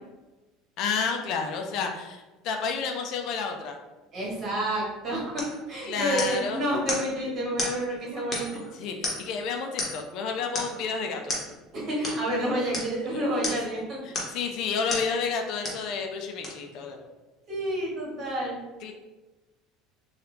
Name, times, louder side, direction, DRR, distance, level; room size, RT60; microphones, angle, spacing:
voice 1, 0.8-3.7 5.8-6.6 8.7-11.3 13.1-13.2 14.1-17.0 18.8-18.9, left 5 dB, 60° left, 3 dB, 0.4 m, -30 dB
voice 2, 4.1-8.7 11.7-14.0 17.5-18.6, right 1 dB, 40° right, -5 dB, 1.5 m, -29 dB
sound 1, 5.4-5.6 6.2-6.5 6.9-7.1 7.6-7.8 8.3-8.6 9.0-9.4 9.8-10.1 10.5-10.8 11.3-11.5 12.0-12.2 12.7-12.9 13.4-13.7 14.1-14.4 14.9-15.1 15.6-15.9 16.4-16.5, left 2 dB, 30° left, 1.0 m, -32 dB
2.9 x 2.4 x 3.3 m, 1.2 s
supercardioid pair, 120°, 0 cm